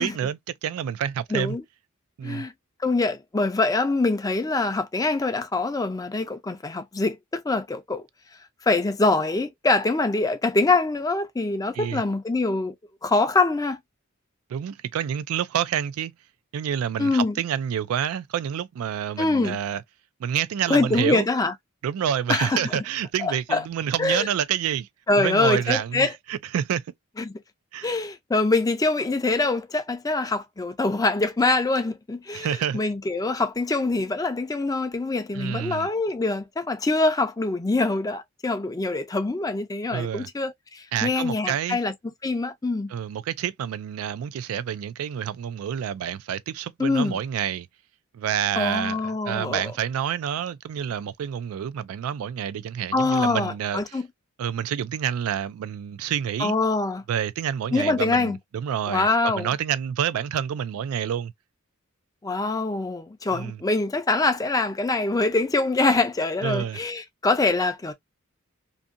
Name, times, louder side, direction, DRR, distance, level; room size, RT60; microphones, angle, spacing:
voice 1, 0.0-1.6 2.2-2.5 11.7-12.0 14.5-16.1 16.5-19.8 20.2-21.3 21.8-24.9 25.2-26.9 27.7-27.9 32.3-32.8 35.3-35.9 39.9-40.3 40.9-41.8 42.9-47.7 48.1-54.0 54.4-56.5 57.1-61.3 63.3-63.6 66.4-66.8, right 9 dB, 80° right, 0.3 m, -28 dB
voice 2, 1.3-1.6 2.2-2.5 2.8-8.0 8.6-12.7 13.0-13.8 17.0-17.3 19.2-19.6 20.7-21.5 22.3-22.8 23.2-23.6 24.0-24.3 25.1-26.1 27.2-27.3 27.8-41.9 42.2-42.9 46.8-47.2 48.6-49.6 52.9-54.1 56.4-57.0 57.7-58.4 58.9-59.5 62.2-67.9, left 3 dB, 15° left, 0.4 m, -24 dB
2.6 x 2.5 x 2.4 m
head